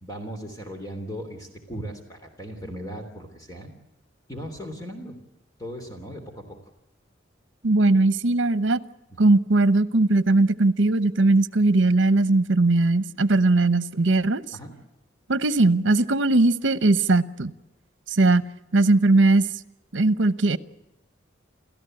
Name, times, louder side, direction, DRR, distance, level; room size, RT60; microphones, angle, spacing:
voice 1, 0.0-3.7 4.3-5.2 5.6-6.6 9.2-9.3 14.5-14.7, equal, 20° left, 4 dB, 3.2 m, -37 dB
voice 2, 7.6-8.8 9.2-14.4 15.3-17.5 18.1-18.5 18.7-19.4 19.9-20.6, right 2 dB, 70° right, 15 dB, 0.9 m, -19 dB
30.0 x 14.0 x 7.8 m, 0.93 s
head